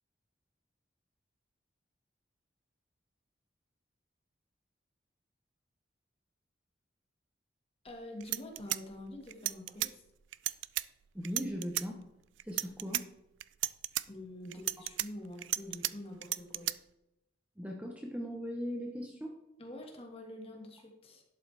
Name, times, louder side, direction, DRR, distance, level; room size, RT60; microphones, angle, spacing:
voice 1, 7.8-10.0 14.1-16.7 19.6-21.2, left 1 dB, 30° left, 1 dB, 1.8 m, -46 dB
sound 1, 7.9-8.0 8.2-9.9 10.3-10.8 11.2-11.9 12.4-13.0 13.4-14.0 14.5-15.9 16.2-16.7, right 16 dB, 75° right, 0.3 m, -34 dB
voice 2, 11.1-12.0 12.4-13.1 17.6-19.3, equal, 5° right, 1 dB, 0.9 m, -39 dB
11.5 x 7.9 x 3.4 m, 0.89 s
head